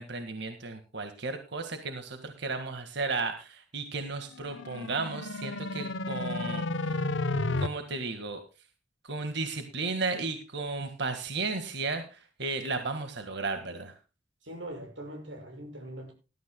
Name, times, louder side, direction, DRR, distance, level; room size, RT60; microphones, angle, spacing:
voice 1, 0.0-7.1 7.6-8.4 9.0-13.9, right 3 dB, 65° right, 1.7 m, -34 dB
sound 1, 4.3-7.7, left 2 dB, 90° left, 0.9 m, -32 dB
voice 2, 14.4-16.1, right 1 dB, 85° right, 6.3 m, -41 dB
19.5 x 13.0 x 2.2 m
head